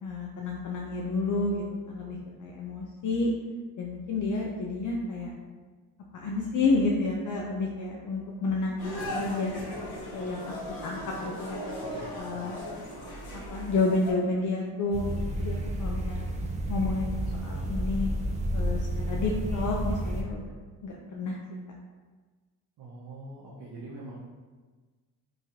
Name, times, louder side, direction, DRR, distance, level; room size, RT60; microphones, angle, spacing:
voice 1, 0.0-3.3 3.8-5.3 6.1-9.6 10.1-10.5 10.8-11.8 12.2-12.5 13.5-15.1 15.4-16.2 16.7-18.1 18.5-20.5 20.8-21.4, left 3 dB, 50° left, -1 dB, 0.5 m, -30 dB
sound 1, 8.8-14.1, equal, 65° left, 0.9 m, -37 dB
voice 2, 11.8-12.4 22.8-24.2, right 2 dB, 65° right, -6 dB, 0.8 m, -44 dB
sound 2, 14.9-20.2, right 1 dB, 20° right, 0.4 m, -31 dB
3.0 x 2.7 x 2.5 m, 1.4 s
cardioid pair, 75°, 40 cm